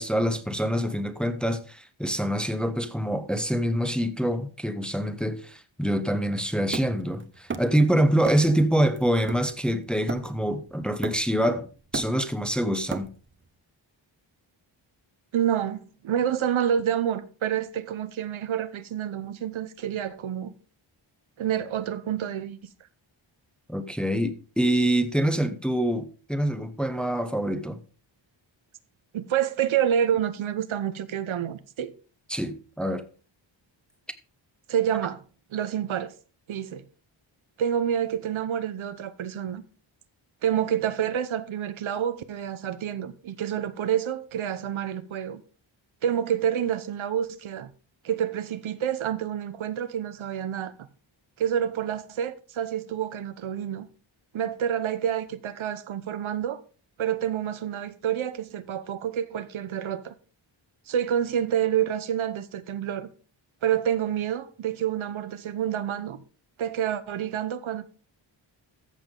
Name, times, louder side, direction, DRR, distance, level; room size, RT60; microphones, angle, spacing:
voice 1, 0.0-11.7 11.9-13.1 23.7-27.8 32.3-33.0, right 1 dB, ahead, 0.8 m, -25 dB
Hammer, 6.7-7.9 8.2-8.6 9.0-10.5 11.0-11.5 11.8-13.4, right 5 dB, 25° right, 0.8 m, -35 dB
voice 2, 15.3-20.5 21.4-22.6 29.1-31.9 34.7-35.2 35.5-36.1 36.5-36.8 37.6-39.6 40.4-45.4 46.0-47.7 48.0-50.9 51.4-53.9 54.3-56.6 57.0-60.1 60.9-63.1 63.6-66.2 66.6-67.9, right 9 dB, 80° right, 0.9 m, -28 dB
13.5 x 7.0 x 3.8 m
wide cardioid pair, 140°, 47 cm